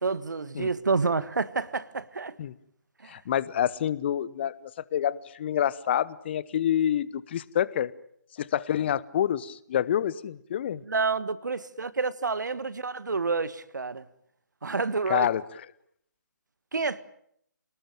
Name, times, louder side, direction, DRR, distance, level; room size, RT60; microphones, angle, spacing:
voice 1, 0.0-2.4 3.0-3.1 10.8-14.1 14.6-15.3 16.7-17.0, right 4 dB, 65° right, 1.5 m, -29 dB
voice 2, 3.1-7.9 8.4-10.8 15.1-15.4, left 10 dB, 35° left, 1.0 m, -27 dB
28.0 x 19.0 x 9.0 m
figure-of-eight pair, 140°, 10 cm